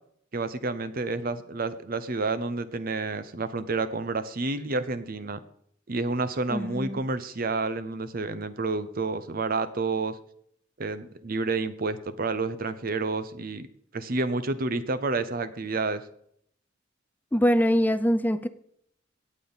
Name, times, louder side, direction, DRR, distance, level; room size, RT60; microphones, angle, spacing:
voice 1, 0.3-5.4 5.9-10.1 10.8-13.7 13.9-16.0, right 3 dB, 50° right, 12 dB, 0.8 m, -29 dB
voice 2, 6.5-7.0 17.3-18.5, equal, 10° left, 12 dB, 0.5 m, -23 dB
17.5 x 7.4 x 4.1 m, 0.69 s
head